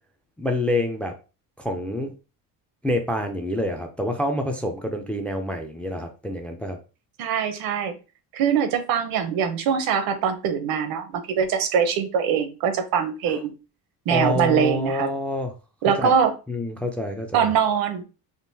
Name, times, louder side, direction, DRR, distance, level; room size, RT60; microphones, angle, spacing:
voice 1, 0.4-1.1 1.6-2.1 2.8-6.8 14.1-15.5 16.0-16.1 16.5-17.5, left 1 dB, 5° left, 4 dB, 0.4 m, -27 dB
voice 2, 7.2-7.9 8.3-13.5 14.1-15.1 15.8-16.3 17.3-18.0, right 7 dB, 65° right, 9 dB, 0.8 m, -23 dB
3.7 x 2.4 x 2.7 m, 0.31 s
cardioid pair, 125°, 37 cm